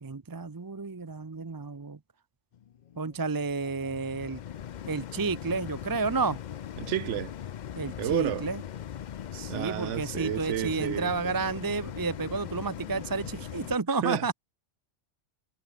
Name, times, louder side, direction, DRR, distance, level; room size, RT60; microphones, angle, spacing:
voice 1, 0.0-2.0 3.0-4.4 4.9-6.4 7.8-8.6 9.3-14.3, right 4 dB, 25° right, 0.5 m, -31 dB
sound 1, 2.5-13.8, left 9 dB, 55° left, 0.5 m, -40 dB
voice 2, 6.8-7.3 8.0-8.5 9.5-11.4 14.0-14.3, right 12 dB, 75° right, 0.9 m, -31 dB
omnidirectional pair, 1.3 m